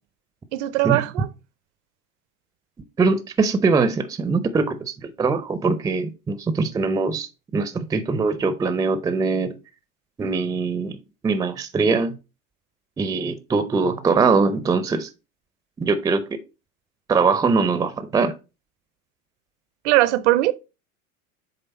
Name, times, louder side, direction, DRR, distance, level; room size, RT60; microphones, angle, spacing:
voice 1, 0.5-1.3 19.8-20.5, right 16 dB, 55° right, 0.6 m, -20 dB
voice 2, 3.0-9.5 10.2-11.0 11.2-12.1 13.0-15.1 15.8-16.4 17.1-18.3, right 4 dB, 10° right, 0.5 m, -22 dB
7.9 x 3.4 x 4.1 m
figure-of-eight pair, 80°, 42 cm